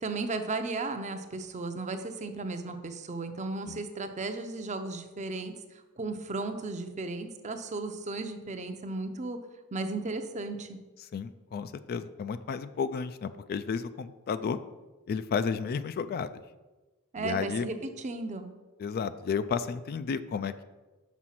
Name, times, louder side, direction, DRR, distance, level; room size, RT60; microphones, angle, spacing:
voice 1, 0.0-5.5 6.0-9.4 9.7-10.8 17.1-18.5, right 3 dB, 30° right, 7 dB, 0.6 m, -35 dB
voice 2, 11.1-14.6 15.1-16.4 17.2-17.7 18.8-20.6, left 6 dB, 45° left, 13 dB, 0.3 m, -32 dB
6.2 x 5.1 x 5.7 m, 1.2 s
head